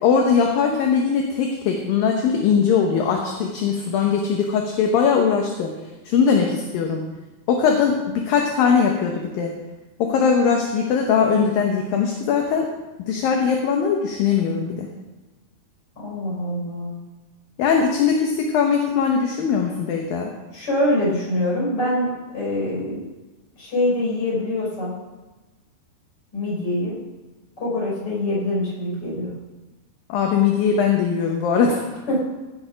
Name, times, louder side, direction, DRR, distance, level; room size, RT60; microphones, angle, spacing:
voice 1, 0.0-5.7 6.1-7.0 7.5-9.6 10.0-12.7 13.0-14.9 17.6-20.3 30.1-31.9, left 6 dB, 70° left, 2 dB, 2.4 m, -20 dB
voice 2, 16.0-17.0 20.5-23.0 23.6-24.9 26.3-26.9 27.6-29.3 32.1-32.2, left 1 dB, 25° left, -5 dB, 4.7 m, -24 dB
16.0 x 6.7 x 5.1 m, 1.1 s
omnidirectional pair, 4.8 m